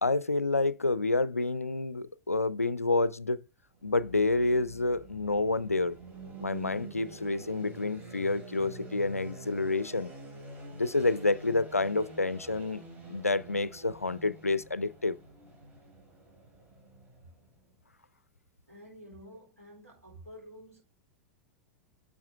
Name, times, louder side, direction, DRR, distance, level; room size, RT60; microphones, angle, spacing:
voice 1, 0.0-3.4 3.8-6.0 6.4-10.1 10.7-12.8 13.1-15.2, left 3 dB, 85° left, 0.4 m, -28 dB
sound 1, 3.7-17.6, right 2 dB, 20° right, 3.9 m, -47 dB
voice 2, 18.7-20.8, equal, 85° right, 4.2 m, -50 dB
10.0 x 6.2 x 3.3 m
figure-of-eight pair, 90°, 8 cm